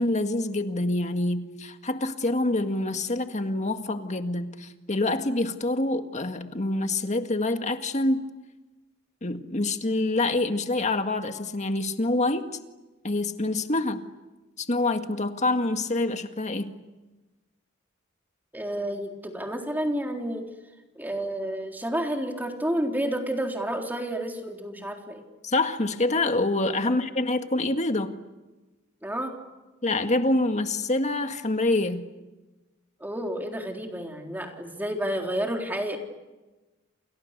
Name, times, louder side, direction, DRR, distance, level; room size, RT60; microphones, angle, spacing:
voice 1, 0.0-8.3 9.2-12.5 13.0-14.0 14.6-16.7 25.4-28.1 29.8-32.0, left 2 dB, 35° left, 7 dB, 1.9 m, -26 dB
voice 2, 18.5-20.5 20.9-25.2 26.9-27.0 29.0-29.3 33.0-36.0, right 1 dB, 10° right, 2 dB, 3.8 m, -30 dB
29.5 x 29.0 x 6.8 m, 1.1 s
head